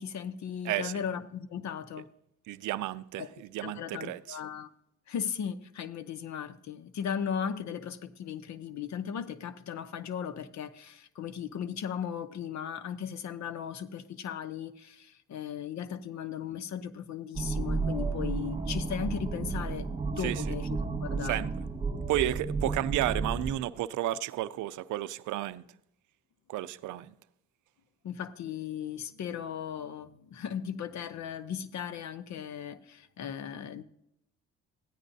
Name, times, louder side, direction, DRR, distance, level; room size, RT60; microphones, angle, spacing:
voice 1, 0.0-2.1 3.2-3.3 3.6-4.7 5.1-20.7 21.0-21.4 28.0-33.8, left 8 dB, 65° left, 0.9 m, -37 dB
voice 2, 2.5-4.4 20.2-20.4 21.2-21.5 22.1-25.6 26.5-27.1, right 14 dB, 80° right, 0.5 m, -32 dB
sound 1, 17.3-23.5, right 4 dB, 15° right, 1.8 m, -32 dB
15.0 x 9.9 x 2.7 m
cardioid pair, 90°, 30 cm